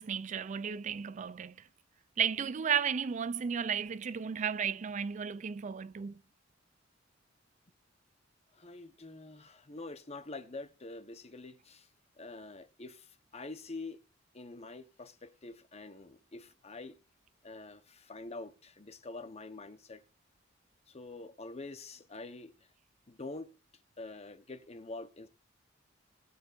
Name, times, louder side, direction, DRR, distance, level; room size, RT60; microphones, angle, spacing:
voice 1, 0.0-1.6 2.2-6.1, right 7 dB, 40° right, 0.4 m, -33 dB
voice 2, 8.5-11.9 12.2-14.0 14.3-17.0 17.4-20.0 20.9-22.5 23.1-23.5 24.0-25.3, left 3 dB, 35° left, 1.0 m, -46 dB
20.5 x 6.9 x 2.6 m
head